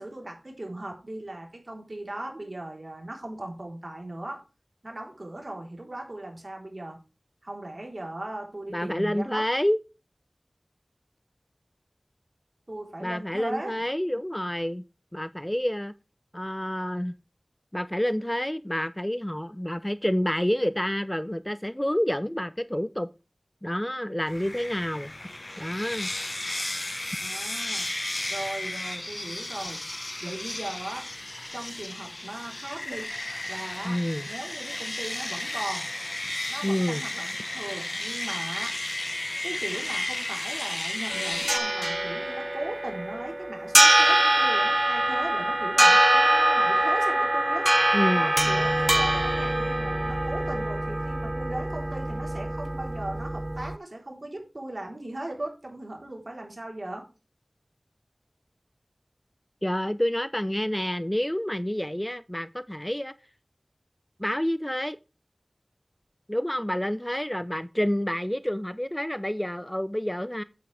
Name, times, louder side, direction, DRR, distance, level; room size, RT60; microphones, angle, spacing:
voice 1, 0.0-4.4 4.8-7.0 7.4-9.4 12.7-13.7 27.0-27.9 28.3-29.8 30.2-31.1 31.5-33.1 33.5-35.9 36.5-38.8 39.4-47.7 48.1-57.1, right 1 dB, 55° right, 3.7 m, -38 dB
voice 2, 8.7-9.8 13.0-14.8 15.1-15.9 16.3-17.1 17.7-23.1 23.6-25.1 25.6-26.1 33.8-34.3 36.6-37.0 47.9-48.3 59.6-63.1 64.2-65.0 66.3-70.4, equal, 15° left, 0.5 m, -28 dB
sound 1, 24.3-41.6, left 1 dB, 45° left, 0.9 m, -34 dB
sound 2, 41.1-53.8, right 1 dB, 35° right, 0.4 m, -23 dB
8.8 x 8.6 x 3.4 m
wide cardioid pair, 45°, 0 cm